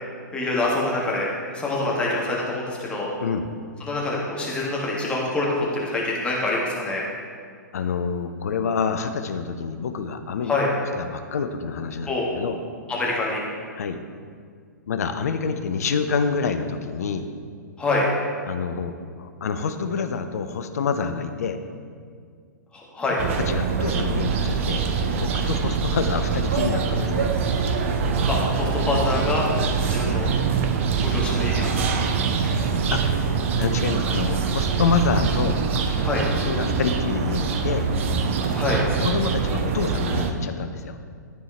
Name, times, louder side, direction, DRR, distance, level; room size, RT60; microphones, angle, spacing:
voice 1, 0.3-3.1 3.8-7.0 10.4-10.7 12.1-12.2 12.9-13.4 17.8-18.1 22.7-23.2 28.3-29.5 29.9-30.3 31.0-32.0 36.0-36.3 38.5-38.8, left 2 dB, 10° left, -4 dB, 1.3 m, -25 dB
voice 2, 7.7-10.5 11.0-12.1 12.4-12.6 13.7-14.0 14.9-17.3 18.4-21.6 23.4-27.3 32.9-33.1 33.6-35.6 36.4-37.9 39.0-41.0, left 5 dB, 55° left, 8 dB, 0.5 m, -27 dB
sound 1, 23.2-40.3, right 5 dB, 40° right, 0.6 m, -24 dB
12.0 x 4.5 x 3.3 m, 2.1 s
figure-of-eight pair, 115°, 10 cm